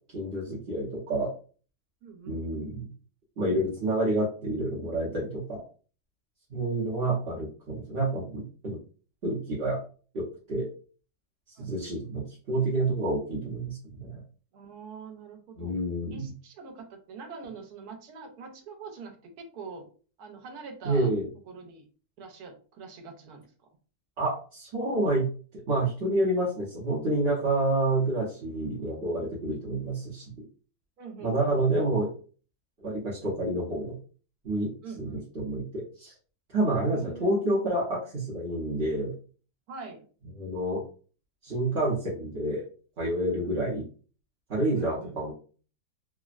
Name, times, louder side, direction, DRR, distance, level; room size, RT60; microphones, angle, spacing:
voice 1, 0.1-1.3 2.3-2.9 3.4-5.6 6.5-8.8 9.2-9.8 10.1-10.7 11.6-14.2 15.6-16.3 20.8-21.2 24.2-25.3 25.7-30.3 31.2-32.1 32.8-34.0 34.4-34.7 35.0-36.1 36.5-39.1 40.4-40.8 41.4-42.6 43.0-43.8 44.5-45.3, right 1 dB, 50° right, -6 dB, 0.9 m, -28 dB
voice 2, 2.0-2.4 6.6-7.3 11.6-12.0 14.5-15.8 16.1-19.9 20.2-21.1 21.5-21.8 22.2-23.5 31.0-31.8 34.8-35.3 36.9-37.5 39.7-40.0 43.4-43.8 44.7-45.2, right 4 dB, 80° right, 4 dB, 1.2 m, -44 dB
3.4 x 2.1 x 2.3 m, 0.39 s
omnidirectional pair, 1.7 m